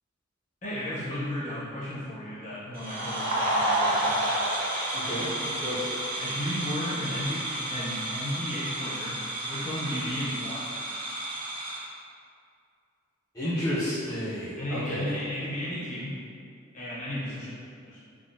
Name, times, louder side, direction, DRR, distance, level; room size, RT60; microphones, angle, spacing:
voice 1, 0.6-4.2 6.2-9.2 9.4-10.7 14.6-16.1 16.7-17.6 17.8-18.0, left 1 dB, 35° left, -9 dB, 0.8 m, -34 dB
sound 1, 2.7-11.8, right 1 dB, 45° right, 0.6 m, -30 dB
voice 2, 4.9-5.8 13.3-15.1, equal, 15° left, -13 dB, 0.4 m, -31 dB
3.5 x 2.0 x 2.6 m, 2.4 s
head